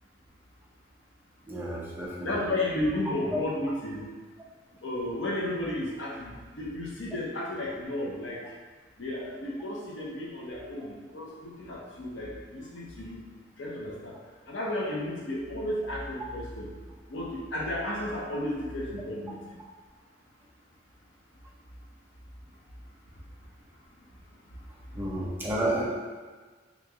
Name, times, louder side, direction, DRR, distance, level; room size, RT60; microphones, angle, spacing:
voice 1, 1.5-2.4 24.9-25.8, right 1 dB, 10° right, -5 dB, 0.5 m, -31 dB
voice 2, 2.2-4.1 4.8-8.4 9.0-13.2 13.6-14.2 14.5-16.7 17.1-19.4 25.5-25.8, left 1 dB, 80° left, -4 dB, 0.8 m, -33 dB
3.0 x 2.5 x 3.5 m, 1.4 s
head